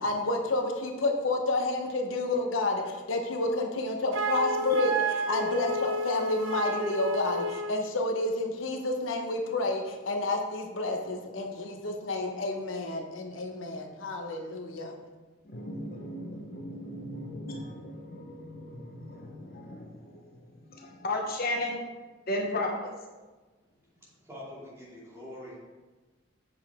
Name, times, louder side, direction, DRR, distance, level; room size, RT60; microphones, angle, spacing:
voice 1, 0.0-15.0, left 2 dB, 80° left, 3 dB, 0.9 m, -30 dB
Wind instrument woodwind instrument, 4.1-7.8, right 1 dB, 75° right, 0.6 m, -31 dB
voice 2, 15.5-20.2 20.7-21.8 22.3-22.9, left 1 dB, 50° left, 1 dB, 1.0 m, -35 dB
voice 3, 24.0-25.5, left 1 dB, 15° right, -7 dB, 2.6 m, -45 dB
7.9 x 6.9 x 3.6 m, 1.3 s
head